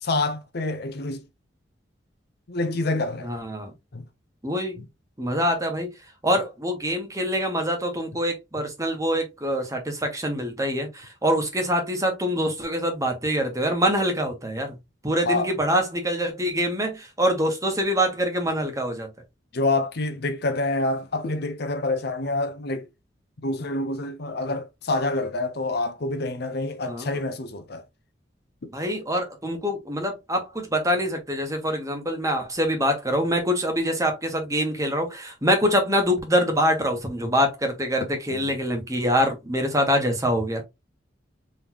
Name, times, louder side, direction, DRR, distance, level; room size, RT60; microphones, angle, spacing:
voice 1, 0.0-1.2 2.5-3.3 3.9-4.1 15.2-15.5 19.5-22.9 23.4-27.8 38.3-38.5, left 2 dB, 60° left, 0.7 m, -27 dB
voice 2, 3.2-3.7 4.4-4.8 5.2-5.9 6.2-14.8 15.0-19.1 26.9-27.1 28.7-40.6, equal, 20° right, 1.3 m, -25 dB
4.0 x 3.4 x 2.9 m
head